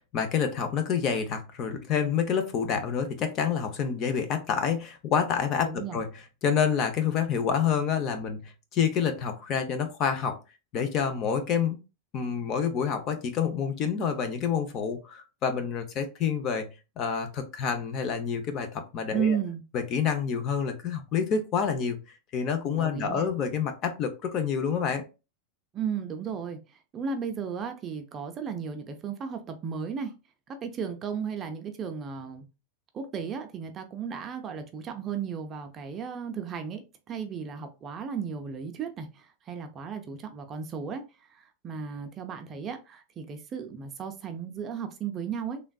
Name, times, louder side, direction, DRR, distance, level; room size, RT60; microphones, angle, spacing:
voice 1, 0.1-8.4 8.7-10.4 10.7-11.8 12.1-16.7 17.0-19.4 19.7-22.0 22.3-25.0, left 7 dB, 35° left, 0.6 m, -28 dB
voice 2, 5.6-6.0 19.1-19.6 22.8-23.3 25.7-26.6 26.9-30.1 30.5-32.4 32.9-45.6, right 6 dB, 25° right, 0.5 m, -34 dB
3.3 x 2.4 x 2.3 m
supercardioid pair, 140°, 0 cm